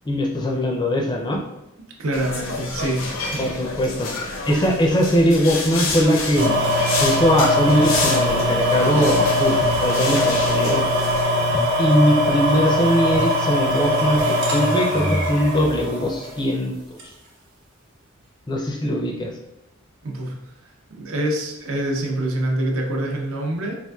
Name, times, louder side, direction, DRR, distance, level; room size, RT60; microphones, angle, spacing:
voice 1, 0.1-1.4 3.4-4.1 4.5-6.6 7.0-10.8 11.8-17.0 18.5-19.3, equal, 20° left, 1 dB, 0.4 m, -21 dB
voice 2, 2.0-3.0 3.3-3.4 20.0-20.3 20.9-23.8, right 1 dB, 75° right, 1 dB, 0.7 m, -25 dB
sound 1, 2.1-11.2, left 3 dB, 70° left, 0.6 m, -29 dB
sound 2, 6.4-16.4 17.0-17.1, left 1 dB, 50° right, 1.0 m, -21 dB
4.3 x 2.5 x 2.3 m, 0.93 s
head